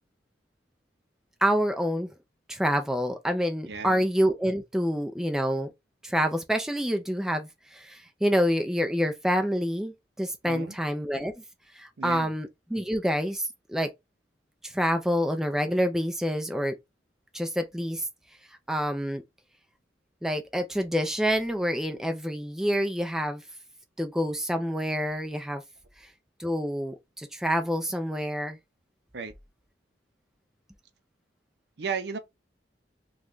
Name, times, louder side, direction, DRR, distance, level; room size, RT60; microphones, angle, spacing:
voice 1, 1.4-2.1 2.5-5.7 6.0-11.3 11.8-13.9 14.6-16.7 17.3-18.0 18.7-19.2 20.2-23.4 24.0-25.6 26.4-28.6, equal, 5° right, 0.4 m, -27 dB
voice 2, 3.7-4.1 10.4-10.8 12.0-12.3 29.1-29.3 31.8-32.2, right 5 dB, 70° right, 0.5 m, -34 dB
3.1 x 2.2 x 3.7 m
head